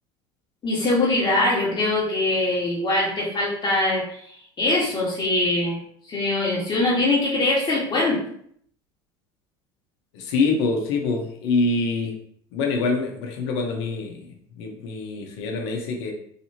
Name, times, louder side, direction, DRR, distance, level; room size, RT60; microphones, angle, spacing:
voice 1, 0.6-4.0 4.6-5.8 6.1-8.2, left 2 dB, 35° left, -5 dB, 1.4 m, -22 dB
voice 2, 10.1-12.1 12.5-16.1, left 3 dB, 80° left, 1 dB, 0.9 m, -25 dB
3.3 x 2.8 x 2.8 m, 0.64 s
supercardioid pair, 90°, 14 cm